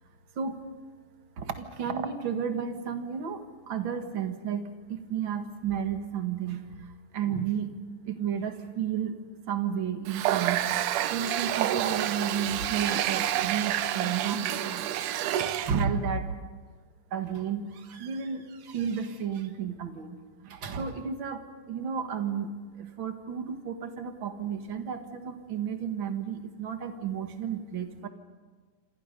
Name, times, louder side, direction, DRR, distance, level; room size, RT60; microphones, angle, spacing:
voice 1, 1.4-4.6 4.9-7.7 8.0-9.2 9.5-10.7 11.1-16.4 17.1-28.1, right 7 dB, 45° right, 6 dB, 2.2 m, -32 dB
Water tap faucet, 10.1-15.9, right 12 dB, 80° right, 2.3 m, -29 dB
28.0 x 27.5 x 5.4 m, 1.5 s
omnidirectional pair, 3.6 m